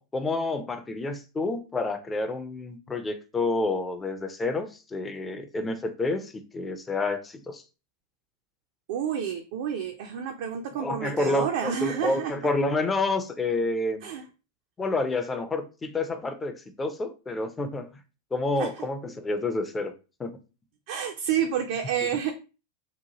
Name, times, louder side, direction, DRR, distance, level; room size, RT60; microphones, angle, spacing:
voice 1, 0.0-7.6 10.8-14.0 14.8-17.9 18.3-19.9 20.2-20.4 22.0-22.2, left 2 dB, 15° left, 0.4 m, -29 dB
voice 2, 8.9-12.3 14.0-14.2 18.6-18.7 20.9-22.3, right 8 dB, 50° right, 0.3 m, -29 dB
2.9 x 2.2 x 2.8 m
figure-of-eight pair, 90°, 0 cm